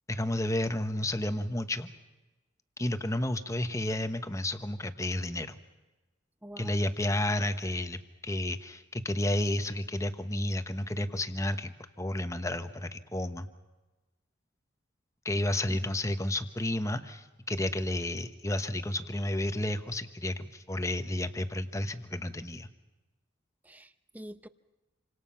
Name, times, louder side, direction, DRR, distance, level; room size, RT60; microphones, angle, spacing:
voice 1, 0.1-1.9 2.8-5.6 6.6-13.5 15.2-22.7, left 1 dB, 15° left, 9 dB, 1.1 m, -31 dB
voice 2, 6.4-6.8 15.5-15.9 23.6-24.5, equal, 10° right, 11 dB, 0.8 m, -47 dB
28.0 x 26.0 x 5.8 m, 1.1 s
head